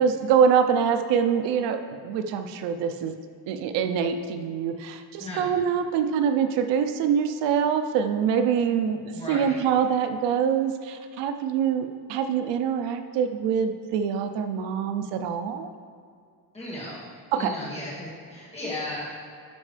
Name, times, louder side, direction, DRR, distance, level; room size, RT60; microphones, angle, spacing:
voice 1, 0.0-1.8 2.0-3.1 3.5-15.7 17.3-17.5, right 7 dB, 90° right, 8 dB, 0.7 m, -24 dB
voice 2, 9.1-9.6 16.5-17.1 17.4-19.1, left 1 dB, 15° left, -7 dB, 2.0 m, -35 dB
12.5 x 5.4 x 3.3 m, 2.3 s
cardioid pair, 170°, 42 cm